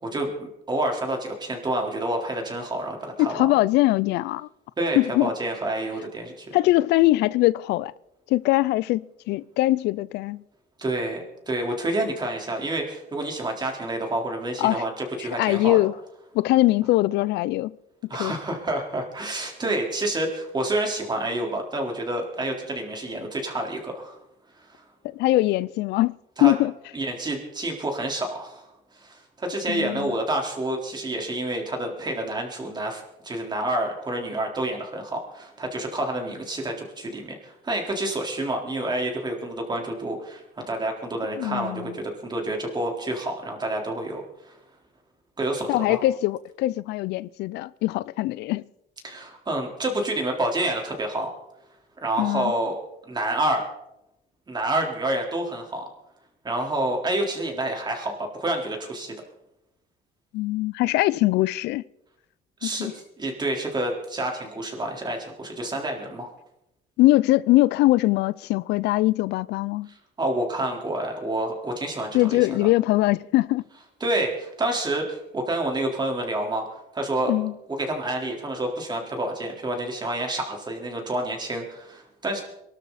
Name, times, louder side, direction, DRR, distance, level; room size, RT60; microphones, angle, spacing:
voice 1, 0.0-3.5 4.8-6.5 10.8-15.8 18.1-24.2 24.7-24.8 26.4-26.5 26.9-28.7 28.9-44.6 45.4-46.0 49.0-51.3 52.0-52.8 53.1-53.6 54.5-55.9 56.4-59.2 62.6-66.3 69.9-72.7 74.0-76.6 76.9-77.3 77.7-82.4, right 1 dB, 25° right, 4.0 m, -28 dB
voice 2, 3.2-4.5 5.0-5.3 6.5-7.9 8.3-10.4 14.6-14.8 15.2-15.9 16.3-17.7 18.2-18.3 25.1-26.1 26.4-26.7 29.7-30.1 41.4-41.9 45.7-48.6 52.2-52.5 60.3-61.8 62.6-62.9 67.0-69.9 72.1-73.6 77.3-77.5, left 17 dB, 80° left, 0.5 m, -22 dB
23.5 x 12.5 x 4.2 m
cardioid pair, 110°, 17 cm